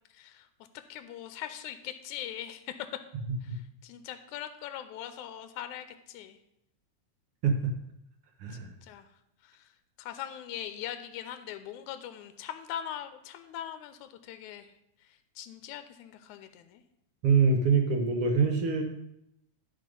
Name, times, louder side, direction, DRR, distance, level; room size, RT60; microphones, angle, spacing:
voice 1, 0.1-0.5 0.9-2.7 3.8-6.4 8.5-9.1 9.4-9.7 10.0-14.7 15.4-16.8, left 10 dB, 85° left, 9 dB, 2.0 m, -41 dB
voice 2, 8.4-8.7 17.2-18.8, right 5 dB, 60° right, 5 dB, 1.6 m, -25 dB
12.0 x 4.1 x 5.3 m, 0.80 s
omnidirectional pair, 3.4 m